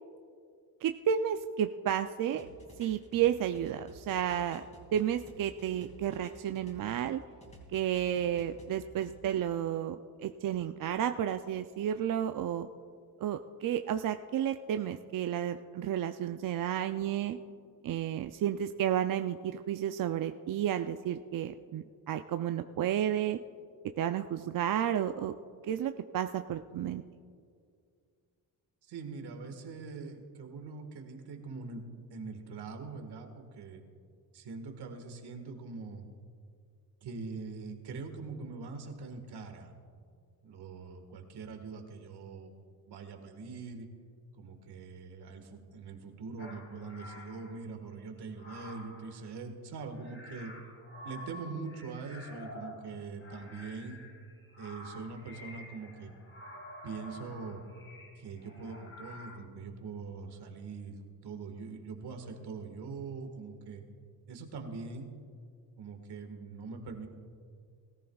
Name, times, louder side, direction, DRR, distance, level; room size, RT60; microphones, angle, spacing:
voice 1, 0.8-2.5 2.8-4.6 4.9-7.2 7.7-12.7 13.2-17.4 17.8-23.4 24.0-25.4 25.6-27.0, right 10 dB, 60° right, 8 dB, 0.5 m, -32 dB
sound 1, 2.4-7.1 7.4-9.1, right 1 dB, 15° left, 3.0 m, -53 dB
voice 2, 28.8-33.8 34.3-36.1 37.0-39.8 40.4-42.6 42.9-43.9 44.3-50.5 51.0-54.0 54.6-56.1 56.8-57.6 58.2-63.8 64.3-65.1 65.8-67.1, right 4 dB, 80° right, 5 dB, 1.7 m, -43 dB
sound 2, 46.4-47.6 48.3-49.3 50.0-59.4, left 1 dB, 35° left, 2.4 m, -49 dB
20.5 x 14.0 x 2.4 m, 2.2 s
cardioid pair, 105°, 39 cm